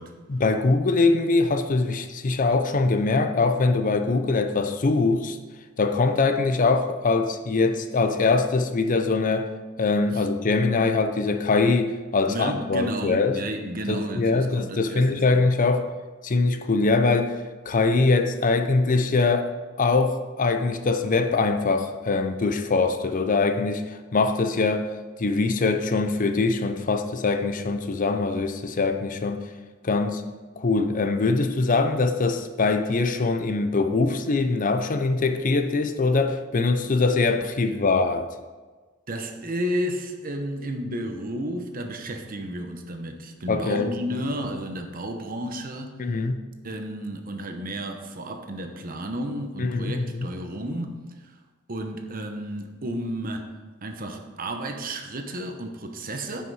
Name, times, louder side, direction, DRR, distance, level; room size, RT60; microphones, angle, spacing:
voice 1, 0.3-5.4 5.8-9.5 9.8-13.4 13.9-15.9 16.2-19.5 19.8-29.4 29.8-30.2 30.6-38.3 43.5-44.2 46.0-46.4 49.6-50.3, left 3 dB, 40° left, 8 dB, 0.6 m, -23 dB
voice 2, 12.3-15.1 15.3-15.5 39.1-46.0 46.6-51.3 51.7-53.5 53.8-56.4, right 1 dB, 45° right, 5 dB, 0.9 m, -32 dB
9.6 x 5.7 x 4.8 m, 1.3 s
head